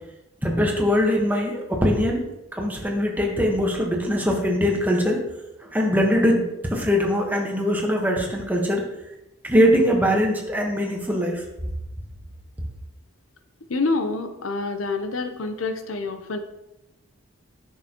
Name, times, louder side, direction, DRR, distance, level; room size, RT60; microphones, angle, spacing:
voice 1, 0.4-2.2 2.5-5.2 5.7-6.4 6.7-8.8 9.4-11.4, equal, 10° right, 0 dB, 1.2 m, -21 dB
voice 2, 13.7-16.4, left 3 dB, 80° left, 8 dB, 0.7 m, -27 dB
10.5 x 6.6 x 3.0 m, 0.93 s
head